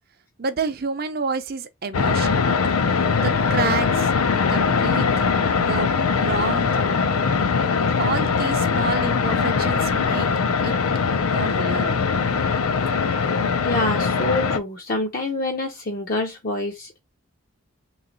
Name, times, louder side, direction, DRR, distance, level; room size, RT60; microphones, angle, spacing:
voice 1, 0.4-2.5 3.2-4.1 4.4-5.3 5.6-6.8 8.0-10.3 10.6-10.8 11.3-12.0, right 4 dB, 45° right, 0.6 m, -29 dB
sound 1, 1.9-14.6, left 5 dB, 85° left, 0.5 m, -21 dB
voice 2, 13.6-16.9, left 2 dB, 40° left, 0.6 m, -26 dB
3.6 x 3.2 x 3.8 m
head